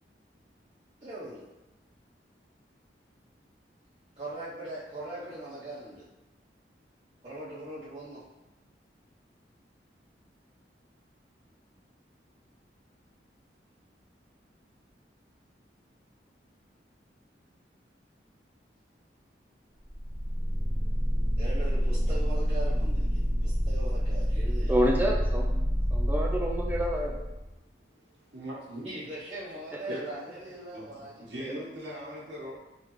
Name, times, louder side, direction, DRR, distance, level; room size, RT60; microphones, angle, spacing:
voice 1, 1.0-1.4 4.2-6.0 7.2-8.2 21.4-24.7 28.8-31.3, right 1 dB, 30° right, -12 dB, 0.8 m, -40 dB
sound 1, 19.9-27.5, equal, 5° left, 0.8 m, -28 dB
voice 2, 24.7-25.5 25.9-27.2 29.7-29.8 31.4-31.6, equal, 10° right, 0 dB, 0.4 m, -28 dB
voice 3, 28.1-28.9 29.9-30.1 30.7-32.5, right 1 dB, 90° right, -5 dB, 1.2 m, -40 dB
3.7 x 3.3 x 3.1 m, 1.0 s
head